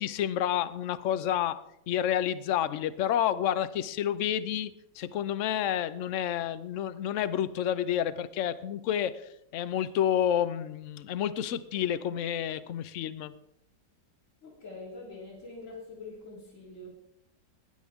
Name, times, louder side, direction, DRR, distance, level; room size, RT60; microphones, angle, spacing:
voice 1, 0.0-13.3, left 10 dB, 65° left, 14 dB, 0.7 m, -30 dB
voice 2, 14.4-16.9, left 2 dB, 40° left, -4 dB, 3.8 m, -44 dB
19.5 x 10.5 x 3.6 m, 0.79 s
omnidirectional pair, 2.0 m